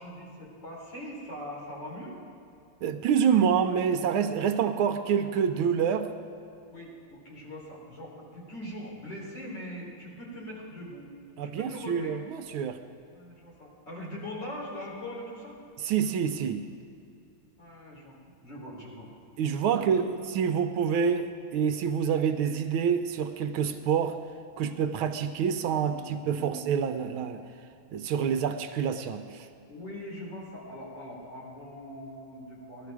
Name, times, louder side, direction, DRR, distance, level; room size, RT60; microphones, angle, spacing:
voice 1, 0.0-2.2 6.7-11.1 11.4-12.1 13.1-15.6 17.6-19.1 19.6-20.1 25.7-26.7 29.7-32.9, left 1 dB, 55° left, -4 dB, 4.5 m, -41 dB
voice 2, 2.8-6.1 11.4-12.8 15.9-16.7 19.4-20.0 20.3-24.2 24.6-27.4 27.9-29.5, right 7 dB, 75° right, 8 dB, 1.5 m, -27 dB
17.0 x 12.5 x 4.7 m, 2.7 s
omnidirectional pair, 2.4 m